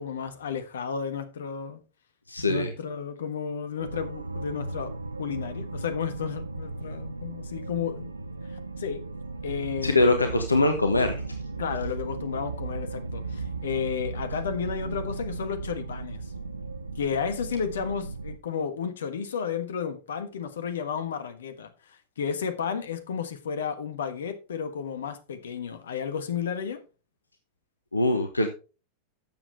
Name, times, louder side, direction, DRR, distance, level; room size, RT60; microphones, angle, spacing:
voice 1, 0.0-1.8 2.4-8.1 8.8-9.0 9.4-10.2 11.6-16.2 17.0-26.8, left 7 dB, 65° left, 1.4 m, -32 dB
voice 2, 2.3-2.7 9.8-11.2 27.9-28.5, left 2 dB, 80° left, 1.0 m, -23 dB
sound 1, 3.8-18.4, right 3 dB, 80° right, 0.7 m, -36 dB
12.0 x 7.6 x 3.4 m
figure-of-eight pair, 90°, 0 cm